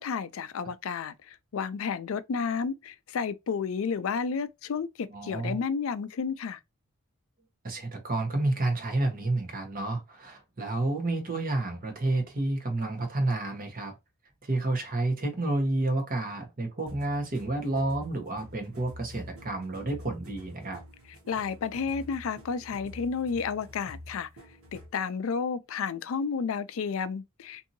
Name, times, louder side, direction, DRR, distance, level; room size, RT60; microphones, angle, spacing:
voice 1, 0.0-6.6 21.3-24.3 24.7-27.7, left 5 dB, 70° left, 0.4 m, -31 dB
voice 2, 5.1-5.6 7.6-14.0 14.4-20.8, right 2 dB, 40° right, 1.0 m, -30 dB
sound 1, 16.9-25.0, left 1 dB, 85° right, 1.2 m, -47 dB
2.7 x 2.7 x 2.6 m
head